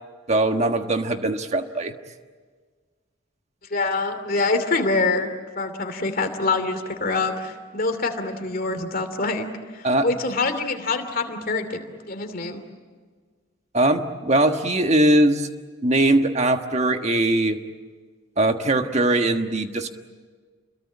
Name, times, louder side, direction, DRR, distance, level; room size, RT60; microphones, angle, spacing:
voice 1, 0.3-1.9 9.8-10.1 13.7-15.5 15.8-17.6 18.4-19.9, right 1 dB, 30° right, 6 dB, 1.5 m, -20 dB
voice 2, 3.7-9.5 9.7-12.6, left 3 dB, 45° left, 7 dB, 2.8 m, -25 dB
29.5 x 22.0 x 8.8 m, 1.5 s
head